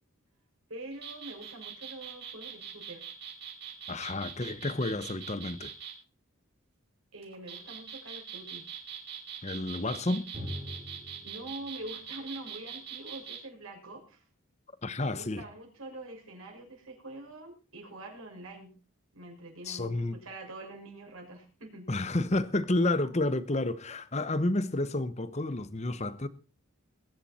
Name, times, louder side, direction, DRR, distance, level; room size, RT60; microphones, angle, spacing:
voice 1, 0.7-3.0 7.1-8.7 11.2-14.2 15.0-18.7 19.1-21.9, right 2 dB, 75° right, 6.2 m, -45 dB
sound 1, 0.9-5.9 7.2-13.4, right 8 dB, 50° right, 5.6 m, -42 dB
voice 2, 3.9-5.7 9.4-10.2 14.8-15.4 19.6-20.2 21.9-26.3, left 2 dB, 30° left, 0.9 m, -30 dB
Drum, 10.3-13.9, equal, 30° right, 4.5 m, -45 dB
21.0 x 10.5 x 4.3 m
head